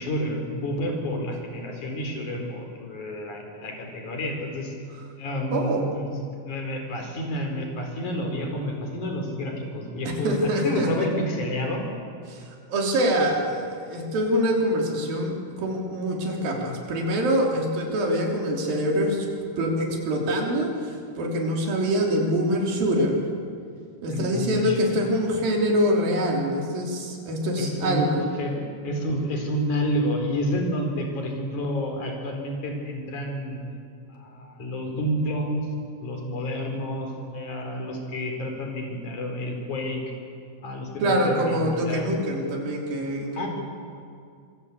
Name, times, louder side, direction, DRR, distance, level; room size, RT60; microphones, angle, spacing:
voice 1, 0.0-4.7 5.2-6.1 6.4-11.8 24.1-24.8 27.6-28.0 28.4-33.6 34.1-35.6 36.0-40.0 40.6-42.1 43.4-43.5, equal, 50° left, 3 dB, 5.4 m, -29 dB
voice 2, 5.5-5.8 10.0-11.1 12.3-12.4 12.7-19.3 19.6-23.2 24.0-28.2 41.0-43.5, equal, 65° right, 0 dB, 5.1 m, -25 dB
26.5 x 22.5 x 8.4 m, 2.3 s
omnidirectional pair, 4.4 m